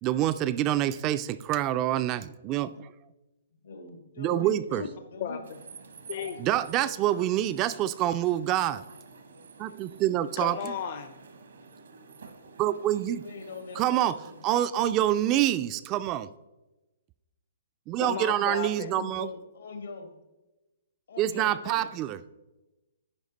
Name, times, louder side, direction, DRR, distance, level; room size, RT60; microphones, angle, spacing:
voice 1, 0.0-2.9 4.2-4.8 6.4-8.8 9.6-10.7 12.6-13.2 13.8-14.2 14.4-16.3 17.9-19.3 21.2-22.2, right 12 dB, 25° right, 13 dB, 0.3 m, -26 dB
voice 2, 3.5-4.8 5.1-5.4 13.2-14.4 18.8-20.1 21.1-21.9, left 4 dB, 80° left, 6 dB, 1.6 m, -42 dB
voice 3, 5.2-5.6 6.1-6.4 10.4-11.1 18.0-18.9, left 7 dB, 50° left, 8 dB, 0.6 m, -34 dB
sound 1, 5.4-14.6, right 5 dB, 80° right, 1.2 m, -50 dB
10.5 x 4.8 x 4.0 m, 1.0 s
hypercardioid pair, 145°, 0 cm